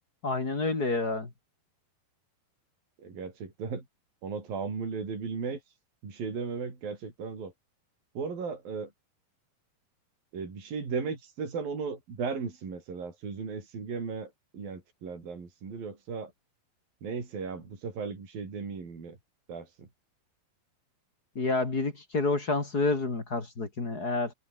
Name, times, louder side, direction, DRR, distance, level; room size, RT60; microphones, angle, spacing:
voice 1, 0.2-1.3 21.3-24.3, left 3 dB, 25° left, 3.3 m, -29 dB
voice 2, 3.0-3.9 4.2-5.6 6.0-7.5 8.2-8.9 10.3-16.3 17.0-19.2 19.5-19.9, right 5 dB, 65° right, 7.3 m, -36 dB
omnidirectional pair, 4.4 m